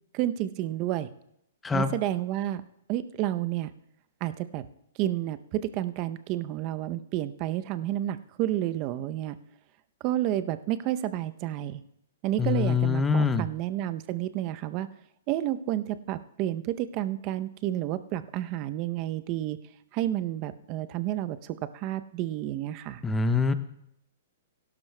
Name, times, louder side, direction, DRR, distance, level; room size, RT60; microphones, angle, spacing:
voice 1, 0.1-1.1 1.7-2.6 2.9-3.7 4.2-4.6 5.0-9.4 10.0-11.8 12.2-14.9 15.3-19.6 19.9-23.0, right 13 dB, 40° right, 12 dB, 0.6 m, -30 dB
voice 2, 12.4-13.5 23.0-23.5, left 5 dB, 10° left, 11 dB, 0.7 m, -24 dB
17.0 x 12.0 x 2.2 m, 0.77 s
hypercardioid pair, 135°, 0 cm